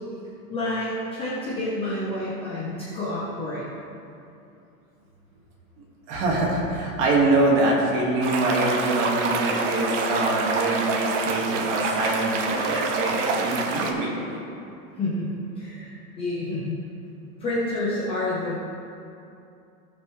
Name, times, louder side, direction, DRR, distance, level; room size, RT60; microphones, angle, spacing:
voice 1, 0.5-3.7 15.0-16.8 17.4-18.6, left 1 dB, 10° left, -8 dB, 0.9 m, -29 dB
voice 2, 6.1-14.4, right 2 dB, 25° right, -3 dB, 1.9 m, -24 dB
sound 1, 8.2-13.9, right 4 dB, 50° right, 1.2 m, -27 dB
18.0 x 6.3 x 3.2 m, 2.6 s
supercardioid pair, 170°, 45 cm